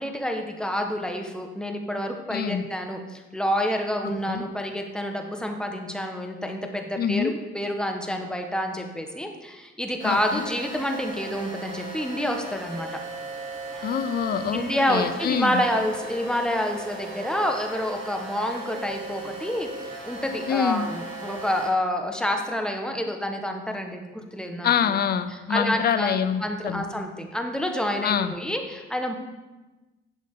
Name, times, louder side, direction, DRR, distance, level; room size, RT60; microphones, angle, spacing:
voice 1, 0.0-12.9 14.5-19.7 20.0-24.7 25.5-29.1, equal, 5° left, 3 dB, 1.3 m, -28 dB
voice 2, 2.3-2.7 4.0-4.4 7.0-7.3 10.0-10.5 13.8-15.6 20.5-20.9 24.6-26.8 28.0-28.3, left 8 dB, 50° left, 12 dB, 0.6 m, -26 dB
sound 1, 10.0-21.7, right 2 dB, 80° right, 3.3 m, -37 dB
11.0 x 7.4 x 3.8 m, 1.1 s
cardioid pair, 90°, 20 cm